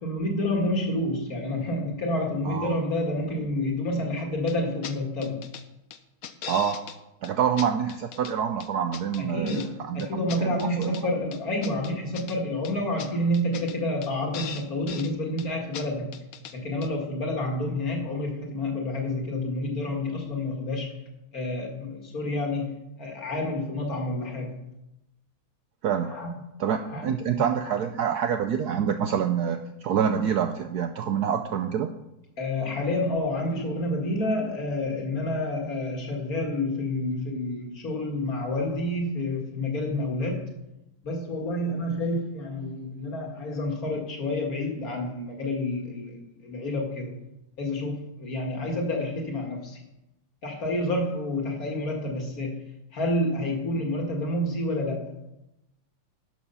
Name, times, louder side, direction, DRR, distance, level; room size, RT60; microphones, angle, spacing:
voice 1, 0.0-5.5 9.2-16.2 16.5-21.0 21.3-24.6 26.0-26.3 26.9-27.1 27.6-27.8 32.4-40.5 41.0-47.1 47.6-49.8 50.4-52.6 52.9-55.2, left 1 dB, 45° left, 1 dB, 2.2 m, -29 dB
voice 2, 2.4-2.8 6.5-6.8 7.2-10.1 10.4-11.0 25.8-26.1 26.6-31.9, right 8 dB, 75° right, 7 dB, 0.9 m, -26 dB
sound 1, 4.5-4.6 4.8-4.9 5.2-5.6 5.9-7.0 7.2-7.3 7.6-8.3 8.6-9.7 10.0-11.0 11.3-12.4 12.6-12.7 13.0-13.1 13.3-13.8 14.0-14.1 14.3-15.1 15.4-15.5 15.7-15.8 16.1-16.5 16.8-16.9, left 8 dB, 70° left, 0.8 m, -39 dB
12.0 x 6.9 x 5.6 m, 0.89 s
omnidirectional pair, 2.3 m